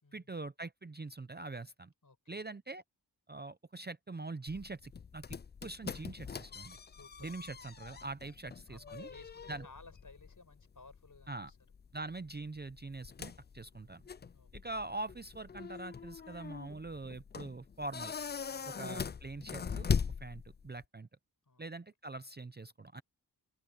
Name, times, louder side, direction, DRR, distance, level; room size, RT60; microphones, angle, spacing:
voice 1, 0.1-1.9 2.3-2.8 3.3-6.8 7.2-9.1 9.5-9.7 11.3-11.5 11.9-14.0 14.5-18.1 18.7-19.9 20.2-21.1 21.6-23.0, right 2 dB, 25° right, 0.6 m, -43 dB
voice 2, 2.0-2.4 6.8-7.3 7.5-7.8 8.7-11.6 14.3-14.5 18.5-19.1 21.5-21.7, left 3 dB, 50° left, 7.1 m, -58 dB
sound 1, 4.5-20.8, left 6 dB, 25° left, 0.3 m, -41 dB
open air
wide cardioid pair, 65°, 40 cm